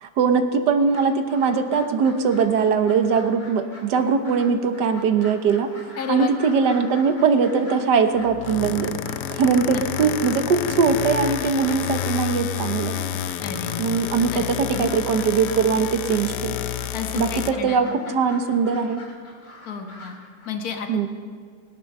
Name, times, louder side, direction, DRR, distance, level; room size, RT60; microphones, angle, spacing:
voice 1, 0.0-5.7 6.1-9.0 9.3-12.9 13.8-16.6 17.2-17.9 18.1-19.0 20.9-21.1, right 5 dB, 85° right, 7 dB, 1.6 m, -21 dB
sound 1, 0.8-20.5, left 2 dB, 35° left, 2.5 m, -44 dB
voice 2, 6.0-6.4 9.7-10.1 13.4-14.0 14.3-14.9 16.9-17.8 18.1-18.2 19.6-20.2 20.4-21.1, left 6 dB, 60° left, 4 dB, 1.7 m, -32 dB
sound 2, 8.2-17.5, left 10 dB, 80° left, 1.2 m, -29 dB
20.0 x 9.2 x 6.6 m, 2.1 s
omnidirectional pair, 1.8 m